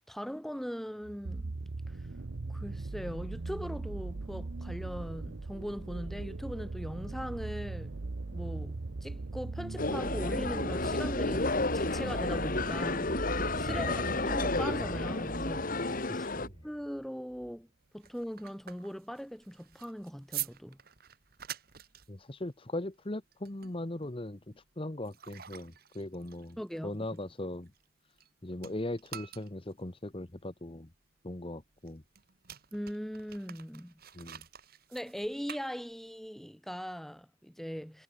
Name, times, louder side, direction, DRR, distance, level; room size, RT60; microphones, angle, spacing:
voice 1, 0.0-1.5 1.9-2.0 2.5-8.0 8.3-13.1 13.5-16.3 16.6-17.7 17.9-20.8 26.6-27.1 32.7-33.9 34.9-38.0, equal, ahead, 3.1 m, -40 dB
sound 1, 1.0-16.6 17.4-17.5, right 3 dB, 75° right, 0.8 m, -39 dB
sound 2, 9.8-16.5, left 3 dB, 45° left, 1.9 m, -32 dB
voice 2, 16.1-16.5 22.1-26.6 26.8-27.7 28.4-30.9 31.2-32.0 34.1-34.4, left 1 dB, 30° left, 1.2 m, -39 dB
sound 3, 17.8-28.3 28.6-36.3, right 12 dB, 50° right, 1.7 m, -47 dB
head